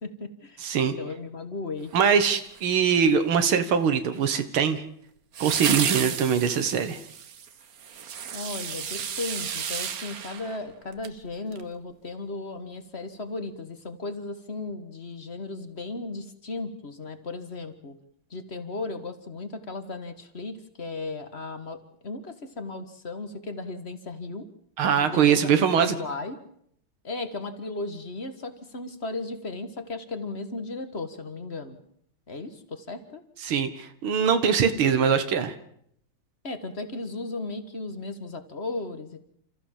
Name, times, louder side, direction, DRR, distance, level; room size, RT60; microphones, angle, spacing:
voice 1, 0.0-1.9 8.3-18.0 18.3-24.5 25.1-26.4 27.0-31.8 32.3-33.2 36.4-39.2, left 3 dB, 35° left, 9 dB, 1.7 m, -36 dB
voice 2, 0.6-1.0 1.9-4.8 5.4-7.0 24.8-26.0 33.4-35.5, right 7 dB, 85° right, 9 dB, 2.2 m, -22 dB
sound 1, 1.9-2.8 5.3-11.2 11.5-11.6, right 7 dB, 50° right, 1.4 m, -33 dB
29.0 x 14.5 x 7.5 m, 0.69 s
omnidirectional pair, 2.2 m